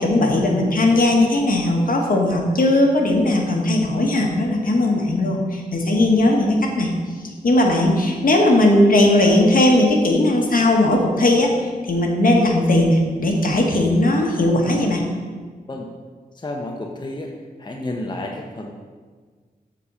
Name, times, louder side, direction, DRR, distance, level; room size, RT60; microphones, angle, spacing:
voice 1, 0.0-6.9 7.4-15.0, left 1 dB, 65° left, 1 dB, 1.3 m, -18 dB
voice 2, 16.4-17.3 17.6-18.7, left 1 dB, 30° left, 1 dB, 0.8 m, -30 dB
7.3 x 4.2 x 6.8 m, 1.5 s
wide cardioid pair, 80°, 16 cm